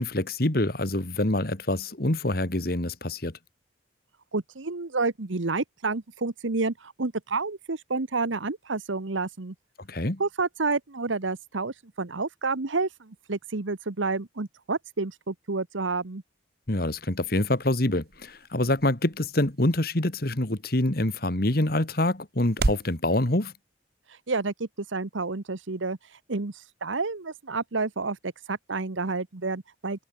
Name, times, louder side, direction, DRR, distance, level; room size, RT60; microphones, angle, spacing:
voice 1, 0.0-3.4 9.8-10.2 16.7-23.5, left 1 dB, 50° left, 1.9 m, -26 dB
voice 2, 4.3-9.5 10.2-16.2 24.1-30.0, right 3 dB, 80° right, 1.2 m, -30 dB
sound 1, 16.7-23.0, right 2 dB, 50° right, 1.0 m, -36 dB
head